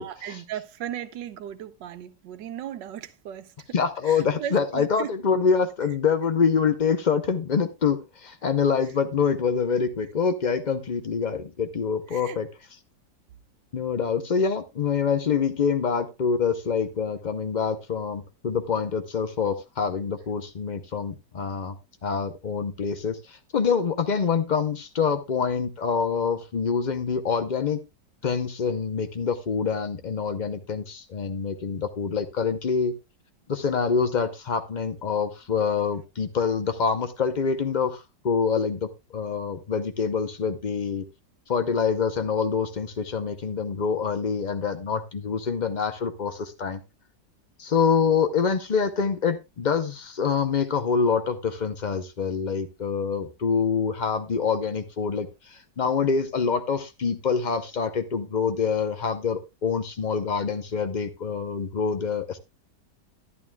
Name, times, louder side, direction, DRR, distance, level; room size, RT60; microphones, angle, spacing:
voice 1, 0.0-3.7 4.0-5.1 12.1-12.4, right 10 dB, 90° right, 1.4 m, -36 dB
voice 2, 3.7-12.5 13.7-21.8 22.0-27.8 28.2-32.9 33.5-41.0 41.5-46.8 47.6-62.4, left 6 dB, 60° left, 0.4 m, -26 dB
11.0 x 11.0 x 2.3 m
omnidirectional pair, 1.9 m